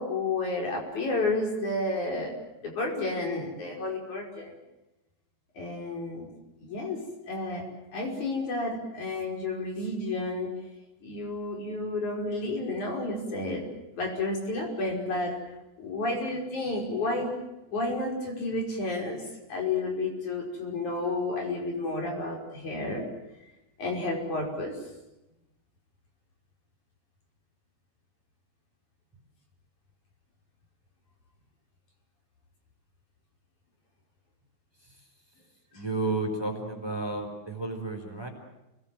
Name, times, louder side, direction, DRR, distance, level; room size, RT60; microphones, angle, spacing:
voice 1, 0.0-2.3 2.6-4.5 5.6-6.3 6.6-10.5 11.0-13.6 13.9-15.4 15.8-17.3 17.7-19.2 19.5-23.0 23.8-24.8, left 2 dB, 80° left, 0 dB, 6.7 m, -31 dB
voice 2, 35.7-38.3, right 3 dB, 10° right, 2 dB, 4.9 m, -32 dB
30.0 x 21.0 x 7.7 m, 0.96 s
omnidirectional pair, 3.4 m